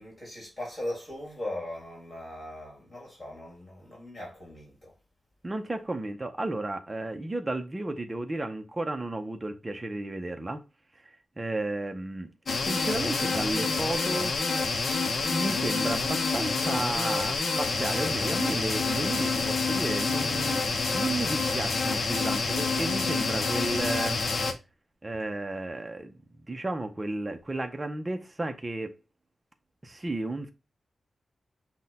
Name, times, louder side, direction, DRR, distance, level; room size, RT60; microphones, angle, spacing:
voice 1, 0.0-4.9, left 1 dB, 25° left, 1.7 m, -39 dB
voice 2, 5.4-10.6 11.4-14.4 15.3-20.6 20.9-24.2 25.0-26.1 26.5-28.9 29.8-30.5, right 2 dB, 20° right, 0.5 m, -33 dB
sound 1, 12.5-24.5, left 4 dB, 55° left, 0.6 m, -28 dB
5.8 x 2.1 x 4.0 m
wide cardioid pair, 135°, 0 cm